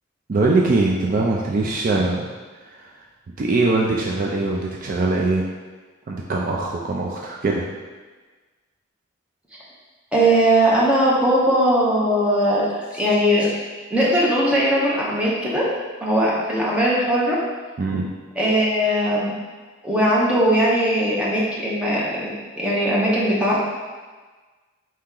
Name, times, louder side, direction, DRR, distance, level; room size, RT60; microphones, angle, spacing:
voice 1, 0.3-2.3 2.8-2.9 3.4-5.4 6.1-7.7 17.8-18.1, right 3 dB, 40° right, -2 dB, 0.4 m, -21 dB
voice 2, 10.1-13.5 13.9-15.6 16.0-17.3 18.4-19.3 19.8-23.6, right 1 dB, 5° right, -6 dB, 0.8 m, -19 dB
4.4 x 2.9 x 3.7 m, 1.4 s
head